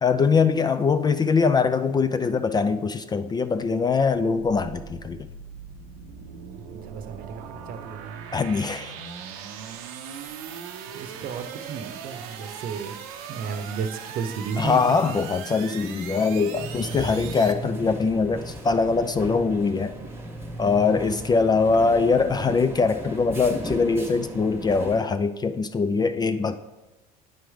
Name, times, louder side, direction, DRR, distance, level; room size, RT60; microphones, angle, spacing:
voice 1, 0.0-5.3 8.3-8.9 14.6-19.9 20.6-26.6, left 4 dB, 25° left, 0.3 m, -22 dB
sound 1, 4.0-17.5, right 7 dB, 80° right, 0.6 m, -40 dB
voice 2, 6.5-8.1 10.9-15.2 20.0-20.1, right 6 dB, 55° right, 0.8 m, -34 dB
sound 2, 16.5-25.0, right 1 dB, 15° right, 1.2 m, -36 dB
9.1 x 3.1 x 4.9 m
supercardioid pair, 80°, 18 cm